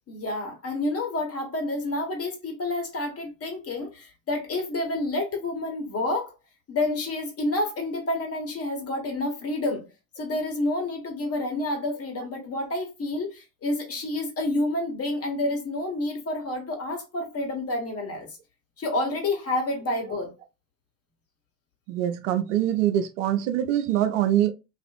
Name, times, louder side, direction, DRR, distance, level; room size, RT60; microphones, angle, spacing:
voice 1, 0.1-6.3 6.7-9.9 10.2-18.4 18.8-20.3, left 2 dB, 35° left, 1.2 m, -29 dB
voice 2, 21.9-24.5, right 11 dB, 75° right, 0.5 m, -24 dB
2.4 x 2.4 x 2.3 m
hypercardioid pair, 55°, 39 cm